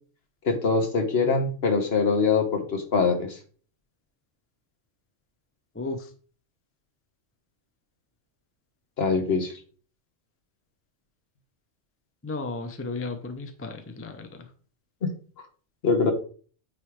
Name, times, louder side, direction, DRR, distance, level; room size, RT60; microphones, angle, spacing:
voice 1, 0.4-3.4 9.0-9.5 15.0-15.1 15.8-16.1, left 4 dB, 55° left, 6 dB, 1.4 m, -23 dB
voice 2, 5.7-6.1 12.2-14.5, left 3 dB, 15° left, 7 dB, 0.6 m, -34 dB
9.0 x 3.2 x 4.8 m, 0.41 s
omnidirectional pair, 1.3 m